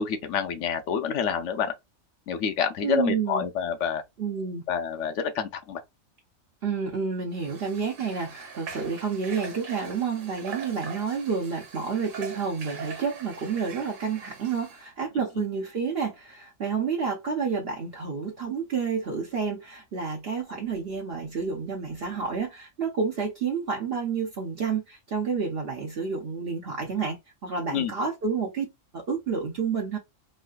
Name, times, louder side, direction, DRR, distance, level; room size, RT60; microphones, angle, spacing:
voice 1, 0.0-1.7 2.3-4.0 4.7-5.8 27.7-27.9, left 7 dB, 65° left, 0.8 m, -28 dB
voice 2, 2.8-3.5 4.2-4.6 6.6-28.7 28.9-30.0, right 5 dB, 55° right, 0.8 m, -29 dB
Water / Water tap faucet, 7.3-14.9, right 5 dB, 80° right, 1.2 m, -42 dB
3.2 x 2.6 x 2.3 m
omnidirectional pair, 1.4 m